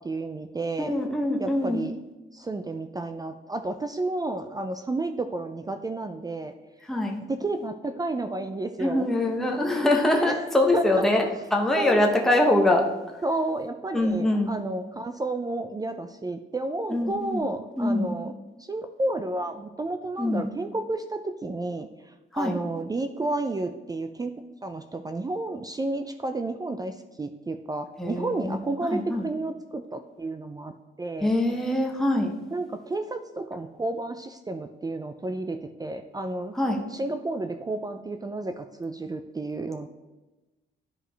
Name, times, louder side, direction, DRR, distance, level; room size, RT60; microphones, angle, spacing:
voice 1, 0.0-1.0 1.4-1.9 2.3-6.5 7.3-9.1 10.2-11.0 11.8-12.0 13.2-18.3 18.6-21.9 22.3-24.3 24.6-31.3 32.5-36.6 36.9-39.9, right 2 dB, 20° right, 8 dB, 0.4 m, -31 dB
voice 2, 0.8-1.8 6.9-7.2 8.8-11.2 11.5-12.9 13.9-14.5 16.9-17.4 17.8-18.1 20.2-20.5 22.3-22.6 28.0-29.3 31.2-32.3 36.5-36.8, left 1 dB, ahead, 0 dB, 0.9 m, -24 dB
11.0 x 4.9 x 3.3 m, 1.1 s
cardioid pair, 90°, 20 cm